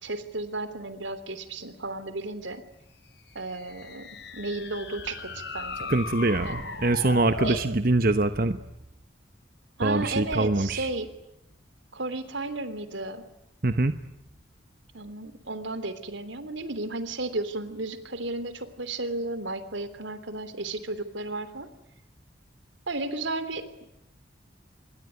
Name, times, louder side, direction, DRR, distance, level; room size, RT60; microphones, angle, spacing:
voice 1, 0.0-2.6 3.3-5.9 6.4-6.6 7.4-7.6 9.8-11.1 11.9-13.2 14.9-21.7 22.9-23.8, right 2 dB, 85° right, 12 dB, 3.3 m, -33 dB
sound 1, 3.3-7.7, left 3 dB, 65° left, 4.8 m, -37 dB
voice 2, 5.9-8.6 9.8-10.9 13.6-14.0, right 2 dB, 50° right, 10 dB, 1.0 m, -24 dB
26.5 x 22.5 x 9.4 m, 0.85 s
head